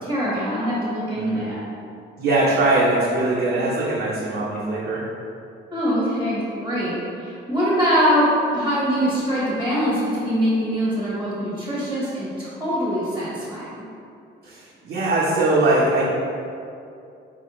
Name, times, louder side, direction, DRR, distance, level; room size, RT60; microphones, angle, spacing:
voice 1, 0.0-1.6 5.7-6.9 7.2-13.8, equal, 5° right, -9 dB, 1.1 m, -23 dB
voice 2, 2.2-5.0 14.4-16.0, right 2 dB, 55° right, -8 dB, 0.7 m, -21 dB
4.1 x 2.5 x 3.0 m, 2.5 s
cardioid pair, 90°, 20 cm